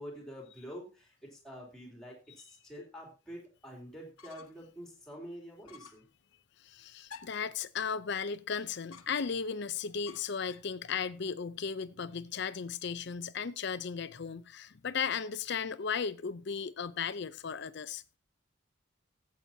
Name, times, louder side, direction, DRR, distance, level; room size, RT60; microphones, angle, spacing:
voice 1, 0.0-6.0, equal, ahead, 3.0 m, -47 dB
sound 1, 4.2-4.7 5.0-5.1 5.6-6.1 7.1-7.5 8.9-9.5 10.1-10.8, left 6 dB, 85° left, 0.8 m, -52 dB
voice 2, 6.6-18.0, left 6 dB, 55° left, 0.5 m, -36 dB
14.5 x 8.5 x 2.8 m
head